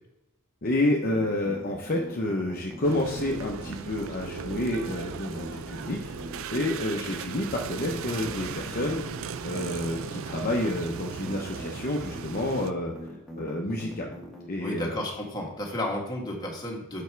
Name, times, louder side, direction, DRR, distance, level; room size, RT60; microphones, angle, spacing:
voice 1, 0.6-6.1 6.5-9.0 9.4-12.9 13.3-14.1 14.5-15.0, left 1 dB, 45° left, -1 dB, 0.8 m, -29 dB
sound 1, 1.0-14.4, equal, ahead, 1.5 m, -42 dB
sound 2, 2.8-12.7, right 6 dB, 65° right, 0.4 m, -37 dB
voice 2, 14.6-17.0, left 1 dB, 20° left, -1 dB, 1.6 m, -32 dB
6.8 x 5.3 x 4.6 m, 0.86 s
head